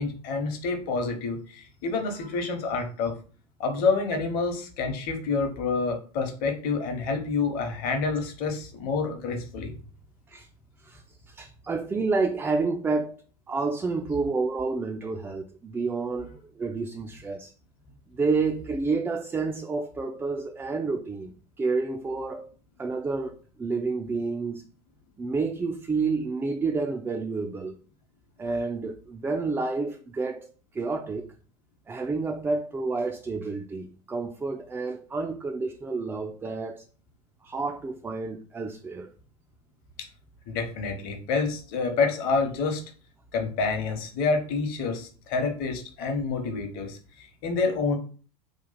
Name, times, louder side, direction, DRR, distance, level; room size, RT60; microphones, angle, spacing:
voice 1, 0.0-3.2 3.6-9.8 40.5-42.8 43.3-48.0, left 4 dB, 45° left, 1.0 m, -28 dB
voice 2, 10.8-13.2 13.5-17.5 18.1-22.5 22.8-24.6 25.2-27.8 28.4-30.5 30.7-31.3 31.9-36.8 37.4-39.1, right 4 dB, 10° right, 0.3 m, -29 dB
3.0 x 2.4 x 4.0 m
figure-of-eight pair, 80°, 20 cm